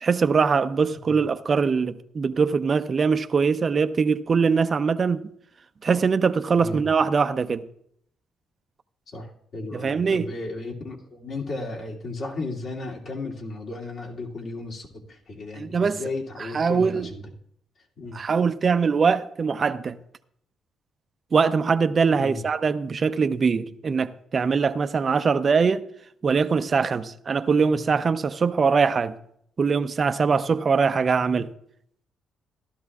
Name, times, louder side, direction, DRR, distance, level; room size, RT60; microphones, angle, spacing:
voice 1, 0.0-5.3 5.8-7.6 9.7-10.3 15.6-16.0 16.5-17.1 18.1-20.0 21.3-25.8 26.2-29.1 29.6-31.5, right 5 dB, 40° right, 0.6 m, -22 dB
voice 2, 6.5-6.9 9.1-17.2 18.0-18.2 22.2-22.4, left 2 dB, 55° left, 2.6 m, -34 dB
15.5 x 12.5 x 2.4 m
cardioid pair, 90°, 0 cm